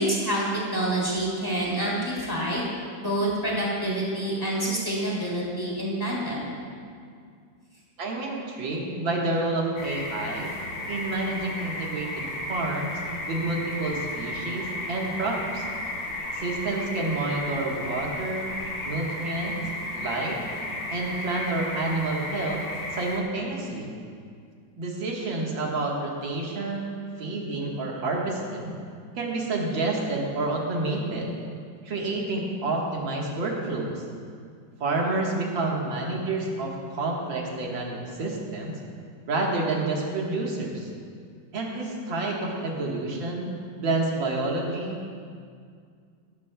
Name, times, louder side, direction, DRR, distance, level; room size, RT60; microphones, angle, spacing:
voice 1, 0.0-2.6 3.0-6.5, right 1 dB, 10° left, -6 dB, 2.9 m, -27 dB
voice 2, 8.0-10.5 10.9-13.0 13.3-15.6 16.3-18.6 18.9-19.6 19.9-20.4 20.9-22.6 22.9-23.9 24.8-28.8 29.2-31.4 31.8-34.0 34.8-38.8 39.3-40.9 41.5-43.5 43.8-45.0, right 2 dB, 80° right, -2 dB, 2.4 m, -29 dB
sound 1, 9.8-23.2, left 1 dB, 35° left, 1.1 m, -34 dB
18.0 x 12.0 x 2.3 m, 2.2 s
omnidirectional pair, 2.1 m